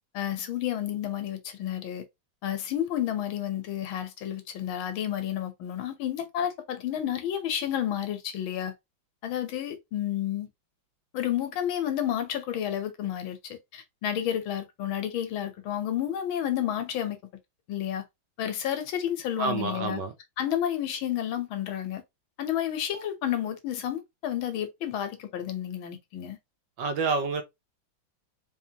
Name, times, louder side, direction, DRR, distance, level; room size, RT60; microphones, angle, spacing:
voice 1, 0.1-2.1 2.4-8.7 9.2-10.5 11.1-17.2 17.7-18.0 18.4-20.0 20.4-22.0 22.4-26.4, left 10 dB, 90° left, 1.7 m, -31 dB
voice 2, 19.4-20.1 26.8-27.4, right 4 dB, 70° right, 1.4 m, -28 dB
4.1 x 3.5 x 2.8 m
omnidirectional pair, 2.1 m